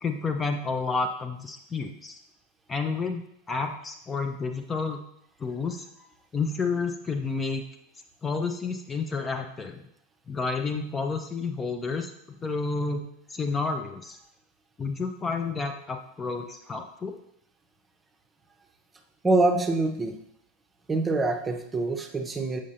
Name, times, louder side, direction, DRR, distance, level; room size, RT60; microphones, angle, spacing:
voice 1, 0.0-2.2 2.7-5.0 5.4-5.9 6.3-7.6 8.2-9.9 10.3-14.2 14.8-17.1, left 4 dB, 20° left, 5 dB, 0.5 m, -30 dB
voice 2, 19.2-20.2 20.9-22.6, right 2 dB, 15° right, 4 dB, 0.7 m, -25 dB
7.2 x 5.0 x 2.8 m, 0.76 s
figure-of-eight pair, 85°, 0 cm